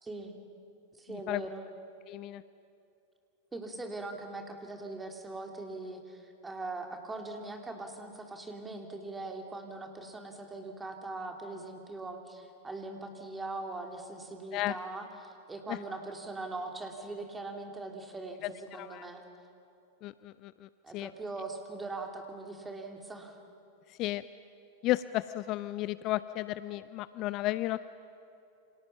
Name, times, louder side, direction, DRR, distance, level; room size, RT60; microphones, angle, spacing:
voice 1, 0.0-0.4 1.0-1.7 3.5-19.2 20.8-23.4, right 2 dB, 10° right, 3 dB, 2.9 m, -41 dB
voice 2, 1.1-1.4 2.1-2.4 14.5-14.8 15.7-15.8 18.4-19.1 20.0-21.1 23.9-24.2 24.8-27.8, left 16 dB, 40° left, 16 dB, 0.5 m, -34 dB
28.5 x 26.0 x 5.8 m, 2.7 s
figure-of-eight pair, 90°, 0 cm